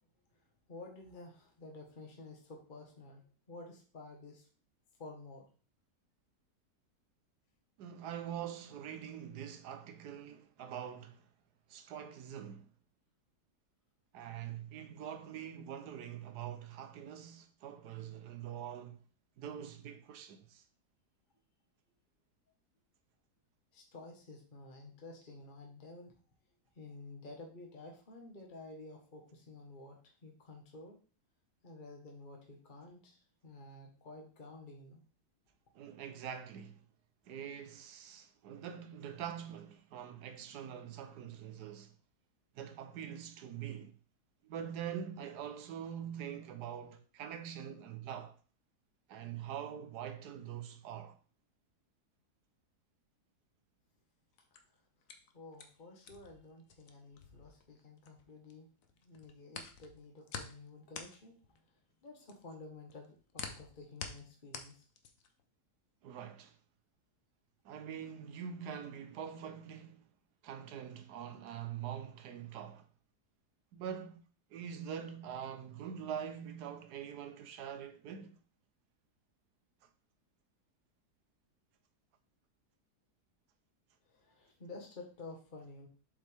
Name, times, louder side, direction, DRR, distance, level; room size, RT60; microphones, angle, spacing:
voice 1, 0.7-3.2 3.5-4.5 5.0-5.4 23.7-26.1 26.7-30.9 31.6-35.0 54.7-54.8 55.3-58.7 59.0-61.6 62.0-64.9 84.0-85.9, left 2 dB, 30° left, 1.5 m, -51 dB
voice 2, 7.8-11.3 11.7-12.7 14.1-19.0 19.4-20.6 35.7-36.8 37.2-41.9 42.5-43.9 44.4-48.4 49.1-51.2 66.0-66.6 67.6-70.1 70.4-72.9 73.7-74.2 74.5-78.4 79.8-79.9, right 9 dB, 85° right, 1.3 m, -44 dB
sound 1, 54.3-58.5 58.8-65.4, left 6 dB, 60° left, 1.2 m, -48 dB
7.5 x 5.5 x 3.4 m
omnidirectional pair, 1.7 m